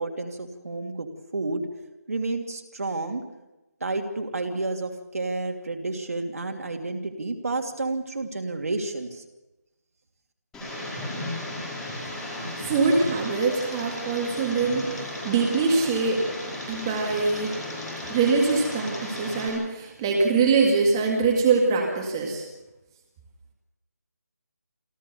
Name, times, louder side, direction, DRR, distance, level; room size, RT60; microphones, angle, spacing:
voice 1, 0.0-1.7 2.1-3.2 3.8-9.2, right 2 dB, 60° right, 4 dB, 2.9 m, -30 dB
Tick, 10.5-19.5, left 1 dB, 5° left, 4.6 m, -35 dB
voice 2, 12.6-15.0 15.2-16.3 16.7-17.6 18.1-22.4, right 4 dB, 15° right, 1 dB, 2.0 m, -23 dB
27.0 x 13.5 x 6.9 m, 1.0 s
figure-of-eight pair, 170°, 9 cm